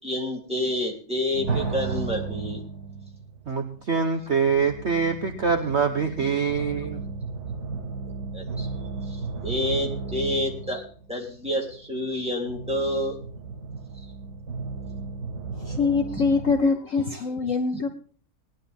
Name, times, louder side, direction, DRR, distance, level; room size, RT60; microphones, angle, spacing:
voice 1, 0.0-2.6 8.3-8.7 9.1-10.8 11.1-13.2, left 1 dB, 5° right, -1 dB, 3.1 m, -28 dB
sound 1, 1.3-16.5, right 4 dB, 65° right, 7.1 m, -34 dB
voice 2, 3.5-7.0, right 5 dB, 45° right, 5 dB, 1.1 m, -24 dB
voice 3, 15.6-17.9, left 4 dB, 55° left, 6 dB, 1.1 m, -24 dB
20.0 x 10.5 x 3.5 m, 0.43 s
omnidirectional pair, 1.9 m